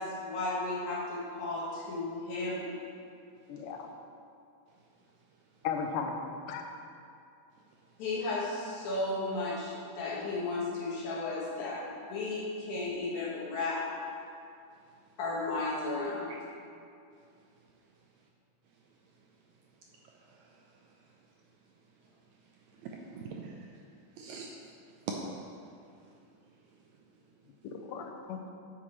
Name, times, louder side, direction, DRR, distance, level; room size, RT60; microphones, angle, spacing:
voice 1, 0.0-2.7 8.0-11.8 12.1-13.9 15.2-16.3, left 2 dB, 70° left, -6 dB, 2.9 m, -34 dB
voice 2, 3.5-3.9 5.6-6.1 6.5-6.8 27.6-28.6, left 6 dB, 90° left, 4 dB, 2.3 m, -36 dB
voice 3, 7.6-8.0 16.3-16.4 17.6-17.7 18.7-18.8 19.2-19.3 19.9-21.3 22.0-27.2, right 4 dB, 80° right, 0 dB, 1.7 m, -46 dB
9.4 x 7.9 x 3.1 m, 2.5 s
omnidirectional pair, 3.6 m